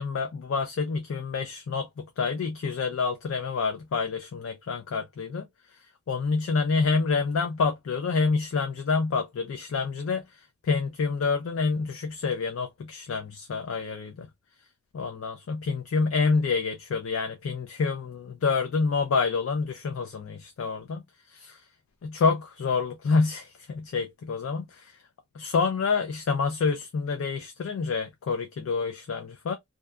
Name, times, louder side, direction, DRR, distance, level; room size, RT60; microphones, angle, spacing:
voice 1, 0.0-5.5 6.1-10.2 10.6-14.3 14.9-21.0 21.3-21.6 22.0-25.0 25.3-29.5, left 4 dB, 60° left, 0.4 m, -27 dB
2.6 x 2.1 x 2.3 m
head